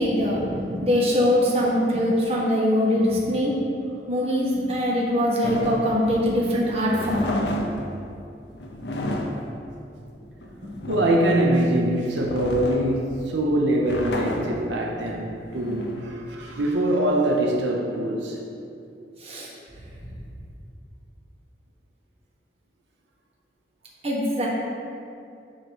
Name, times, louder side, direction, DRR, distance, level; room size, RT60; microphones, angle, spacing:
voice 1, 0.0-3.6 4.1-7.4 10.6-10.7 19.2-19.5 24.0-24.5, left 1 dB, 35° right, -4 dB, 1.3 m, -22 dB
sound 1, 5.4-16.8, left 1 dB, 70° left, 0.7 m, -32 dB
voice 2, 10.9-18.4, right 1 dB, 90° right, -1 dB, 0.7 m, -23 dB
7.5 x 3.1 x 6.2 m, 2.6 s
head